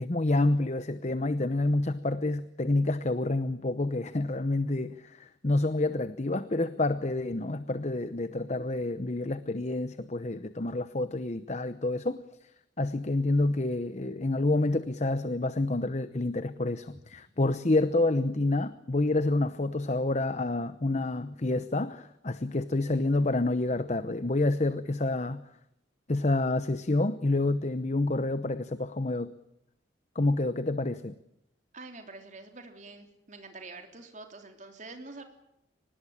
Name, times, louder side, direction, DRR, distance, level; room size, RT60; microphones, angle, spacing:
voice 1, 0.0-12.5 12.8-25.4 26.1-29.3 30.1-31.2, left 2 dB, 40° left, 13 dB, 0.8 m, -28 dB
voice 2, 31.7-35.2, right 3 dB, 40° right, 5 dB, 3.5 m, -46 dB
24.0 x 20.0 x 8.8 m, 0.79 s
head